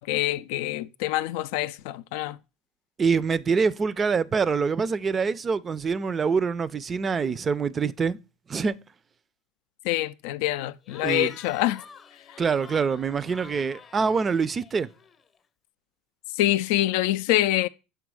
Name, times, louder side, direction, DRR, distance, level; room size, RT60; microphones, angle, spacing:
voice 1, 0.0-2.4 9.8-11.8 16.3-17.7, left 15 dB, 70° left, 0.3 m, -25 dB
voice 2, 3.0-8.2 8.5-8.8 11.0-11.3 12.4-14.9, right 5 dB, 30° right, 0.5 m, -25 dB
Cheering / Crowd, 10.8-15.5, left 6 dB, 35° left, 0.7 m, -49 dB
6.9 x 3.6 x 4.8 m
hypercardioid pair, 85°, 0 cm